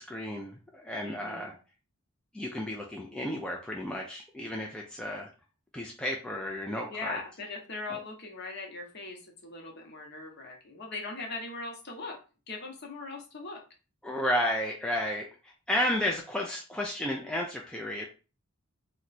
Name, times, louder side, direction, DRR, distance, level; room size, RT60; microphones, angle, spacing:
voice 1, 0.0-1.5 2.3-5.3 5.7-7.2 7.9-8.0 14.0-18.1, left 1 dB, 5° left, -1 dB, 0.3 m, -32 dB
voice 2, 1.0-1.5 6.9-12.2 12.5-13.6, left 3 dB, 50° left, 1 dB, 0.8 m, -40 dB
2.9 x 2.2 x 4.0 m, 0.34 s
head